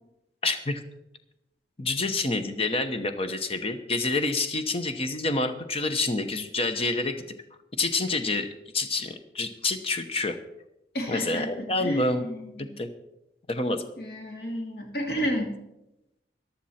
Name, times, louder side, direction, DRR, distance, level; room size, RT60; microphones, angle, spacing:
voice 1, 0.4-0.8 1.8-7.2 7.8-10.4 11.1-12.3 12.6-12.9 13.5-13.8, left 3 dB, 35° left, 8 dB, 0.9 m, -28 dB
voice 2, 10.9-12.7 14.0-15.6, equal, 60° left, 1 dB, 2.8 m, -31 dB
14.0 x 11.5 x 4.3 m, 0.88 s
head